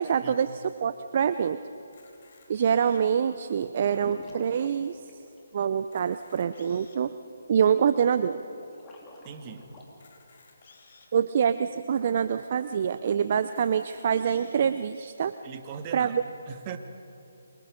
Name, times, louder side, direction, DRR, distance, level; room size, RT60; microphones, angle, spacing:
voice 1, 0.0-1.6 2.5-5.0 5.5-7.1 7.5-8.4 11.1-15.3 15.9-16.2, right 7 dB, 45° right, 12 dB, 0.6 m, -25 dB
Camera, 1.8-3.2 3.8-3.9 4.2-4.3 4.8-4.9 5.7-7.1 7.7-7.8 9.9-11.1 11.8-11.9 12.2-12.3 13.4-14.6, left 4 dB, 50° left, 3.8 m, -57 dB
sound 1, 4.0-5.8 8.5-9.9, left 2 dB, 15° left, 3.4 m, -49 dB
voice 2, 9.2-9.7 15.4-16.2 16.5-16.8, right 7 dB, 25° right, 6 dB, 1.7 m, -39 dB
29.0 x 24.0 x 5.1 m, 2.9 s
figure-of-eight pair, 150°, 0 cm